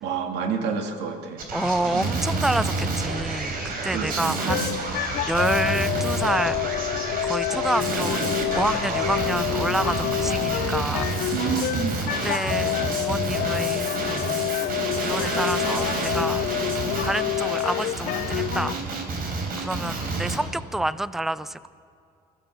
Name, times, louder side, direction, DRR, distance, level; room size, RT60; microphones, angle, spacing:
voice 1, 0.0-1.4 1.9-2.1 3.9-4.8 11.3-12.0, right 6 dB, 85° right, 4 dB, 2.3 m, -29 dB
Male speech man speaking, 1.4-20.4, right 3 dB, 60° right, 3.9 m, -29 dB
voice 2, 1.5-6.6 7.2-8.2 8.5-11.5 12.2-14.4 15.0-16.5 17.0-18.7 19.6-21.7, right 1 dB, ahead, 16 dB, 0.5 m, -28 dB
sound 1, 4.5-18.7, left 14 dB, 60° left, 0.5 m, -28 dB
24.5 x 15.0 x 7.1 m, 2.5 s
cardioid pair, 110°, 17 cm